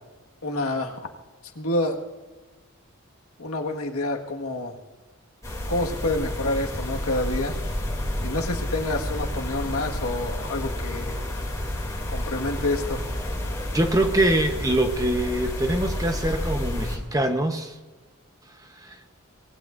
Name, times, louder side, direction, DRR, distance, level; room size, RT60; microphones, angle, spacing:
voice 1, 0.4-1.1 1.5-2.0 3.4-4.8 5.7-7.5 8.2-11.2 12.1-13.0, left 2 dB, 80° left, 2 dB, 1.8 m, -28 dB
sound 1, 5.4-17.0, left 1 dB, 15° left, 2.8 m, -30 dB
voice 2, 13.7-17.7 18.8-19.0, right 1 dB, 15° right, 5 dB, 1.0 m, -24 dB
25.0 x 19.5 x 2.6 m, 1.3 s
head